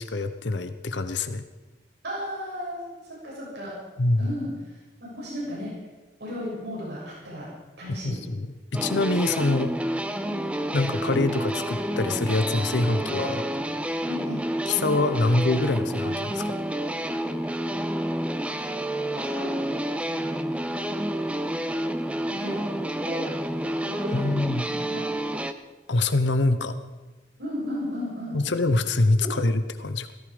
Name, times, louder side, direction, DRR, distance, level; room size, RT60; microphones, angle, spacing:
voice 1, 0.0-1.4 4.0-4.3 8.0-9.8 10.7-13.4 14.7-16.5 24.1-24.7 25.9-26.7 28.3-30.1, left 2 dB, 85° left, 10 dB, 0.9 m, -25 dB
voice 2, 2.0-3.7 4.2-4.5 5.0-5.7 6.2-7.5 7.8-8.2 10.2-10.4 14.1-14.4 19.1-19.5 22.3-23.2 23.8-25.1 27.4-28.4 29.2-29.3, left 1 dB, 75° right, -5 dB, 7.1 m, -35 dB
sound 1, 8.7-25.5, right 1 dB, 5° right, 0.6 m, -29 dB
17.0 x 14.5 x 5.1 m, 1.2 s
head